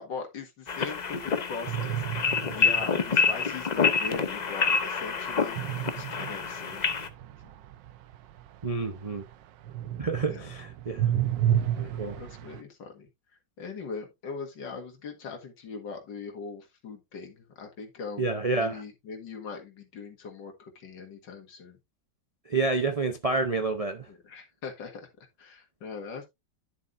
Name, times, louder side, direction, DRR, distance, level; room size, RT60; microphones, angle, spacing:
voice 1, 0.0-5.6 5.9-6.9 10.3-10.5 11.0-11.1 11.8-11.9 12.2-13.1 13.6-21.8 24.1-25.1 25.4-26.3, left 5 dB, 80° left, 2.4 m, -41 dB
sound 1, 0.7-7.1, left 5 dB, 50° left, 0.5 m, -27 dB
sound 2, 1.6-3.3 5.5-9.3 9.6-12.6, right 10 dB, 85° right, 1.4 m, -31 dB
voice 2, 8.6-9.2 10.0-11.1 11.8-12.2 18.2-18.8 22.5-24.1, right 3 dB, 50° right, 0.4 m, -29 dB
10.5 x 7.2 x 2.5 m
omnidirectional pair, 1.9 m